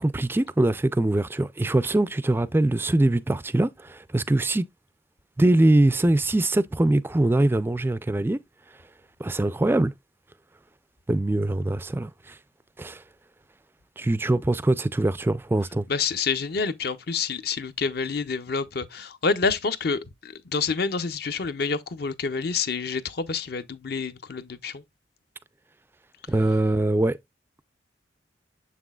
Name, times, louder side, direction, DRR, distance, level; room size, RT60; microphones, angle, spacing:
voice 1, 0.0-4.6 5.4-8.4 9.2-9.9 11.1-12.4 12.8-13.0 14.0-15.9 26.3-27.2, right 1 dB, 10° right, 0.3 m, -23 dB
voice 2, 15.9-24.8, left 5 dB, 60° left, 0.7 m, -28 dB
7.3 x 6.0 x 2.3 m
head